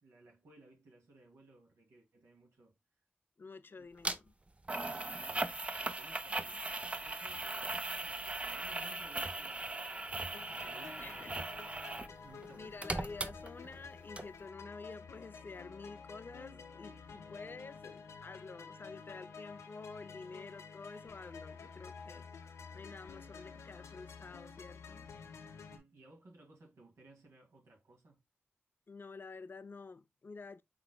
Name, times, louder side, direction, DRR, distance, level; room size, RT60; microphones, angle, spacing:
voice 1, 0.0-2.8 3.8-3.9 4.7-5.4 5.8-11.4 12.2-12.9 25.7-28.2, right 2 dB, 80° right, 2.3 m, -60 dB
voice 2, 3.4-4.3 6.3-6.6 11.0-11.3 12.5-22.3 22.7-25.1 28.9-30.6, left 4 dB, 50° left, 0.5 m, -50 dB
sound 1, 4.0-4.2 4.7-12.1 12.4-13.9 14.2-14.3, right 2 dB, 25° right, 0.6 m, -39 dB
sound 2, 10.3-25.8, left 5 dB, 85° left, 0.7 m, -51 dB
6.0 x 3.3 x 2.2 m
cardioid pair, 45°, 5 cm